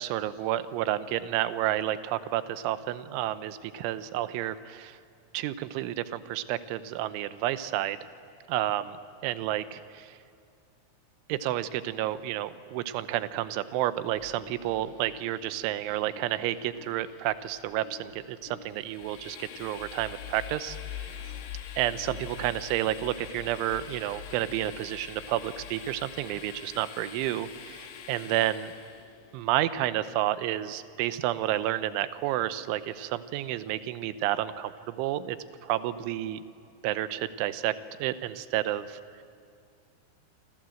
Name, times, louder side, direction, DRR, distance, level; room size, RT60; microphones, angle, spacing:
voice 1, 0.0-5.0 5.3-8.0 8.5-9.0 9.2-10.2 11.3-21.1 21.8-28.7 29.3-35.4 35.6-36.4 36.8-37.7 38.0-39.0, right 13 dB, 90° right, 13 dB, 3.3 m, -30 dB
sound 1, 14.1-30.0, left 9 dB, 80° left, 4.4 m, -47 dB
Train, 18.7-29.1, left 7 dB, 60° left, 2.7 m, -46 dB
27.5 x 26.5 x 7.8 m, 2.3 s
omnidirectional pair, 5.4 m